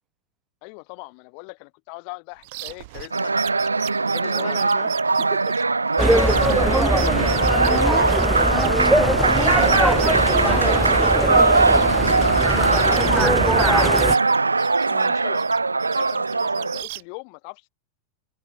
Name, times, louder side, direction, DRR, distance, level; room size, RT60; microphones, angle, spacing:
voice 1, 0.6-3.3 4.0-4.6 6.0-7.9 9.0-9.4 10.4-11.7 14.9-15.5 15.9-17.7, left 40 dB or more, 45° left, 2.5 m, -40 dB
sound 1, 2.4-8.9 9.2-12.5 12.7-15.1 15.3-17.0, right 23 dB, 50° right, 2.2 m, -37 dB
sound 2, 3.1-16.8, right 3 dB, 80° right, 0.5 m, -20 dB
voice 2, 4.2-5.6 8.6-9.8 14.8-15.2, right 11 dB, 30° right, 5.3 m, -39 dB
sound 3, 6.0-14.2, right 1 dB, 5° right, 0.7 m, -21 dB
figure-of-eight pair, 90°, 0 cm